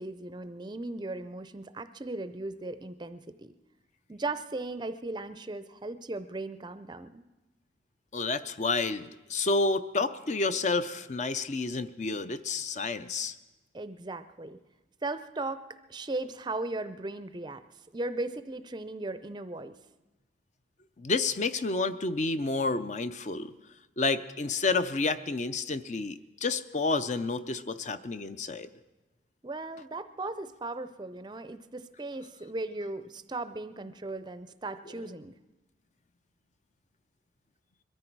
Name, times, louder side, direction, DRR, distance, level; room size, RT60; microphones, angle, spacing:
voice 1, 0.0-3.5 4.1-7.2 13.7-14.6 15.0-17.6 17.9-19.8 29.4-35.3, right 2 dB, 25° right, 12 dB, 0.5 m, -37 dB
voice 2, 8.1-13.3 21.0-23.5 24.0-28.7, left 3 dB, 40° left, 12 dB, 0.5 m, -30 dB
22.0 x 14.0 x 4.6 m, 1.1 s
head